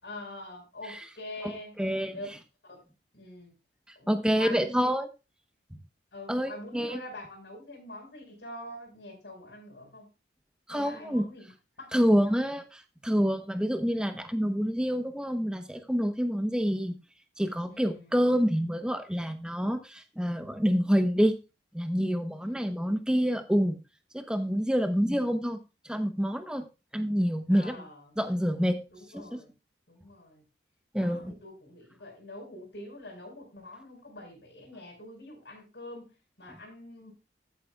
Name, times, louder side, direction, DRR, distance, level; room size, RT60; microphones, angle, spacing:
voice 1, 0.0-1.8 2.1-2.3 2.6-2.8 3.1-3.5 3.9-4.8 6.1-10.1 10.7-11.5 11.8-12.4 17.7-18.1 22.4-22.8 24.8-25.0 27.5-28.2 28.9-29.5 29.9-30.4 31.0-37.1, left 1 dB, 75° left, 3 dB, 4.9 m, -45 dB
voice 2, 1.8-2.2 4.1-5.1 6.3-7.0 10.7-11.3 11.9-16.9 17.4-21.3 21.7-23.8 24.1-25.6 25.8-26.6 26.9-27.8 28.2-28.8 29.1-29.2 30.9-31.3, equal, 5° right, 7 dB, 0.9 m, -27 dB
13.5 x 8.3 x 2.4 m, 0.28 s
head